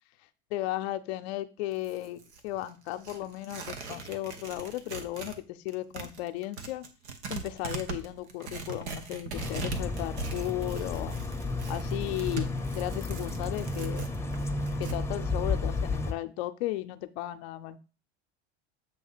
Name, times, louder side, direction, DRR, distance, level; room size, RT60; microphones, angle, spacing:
voice 1, 0.5-6.8 7.3-11.2 11.7-14.0 14.8-17.8, left 15 dB, 70° left, 10 dB, 0.6 m, -35 dB
Tearing, 1.7-5.4 5.7-15.0, right 4 dB, 85° right, 1.0 m, -40 dB
sound 1, 9.3-16.1, left 3 dB, 10° left, 0.7 m, -32 dB
7.5 x 2.8 x 5.6 m, 0.34 s
hypercardioid pair, 80°, 33 cm